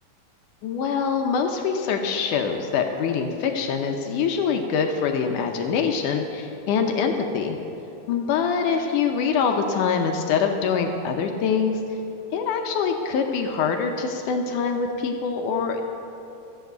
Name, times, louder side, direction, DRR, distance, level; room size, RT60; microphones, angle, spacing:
voice 1, 0.6-7.6 8.1-11.8 12.3-15.8, left 6 dB, 75° left, 4 dB, 2.1 m, -24 dB
14.5 x 8.3 x 7.9 m, 2.8 s
omnidirectional pair, 4.0 m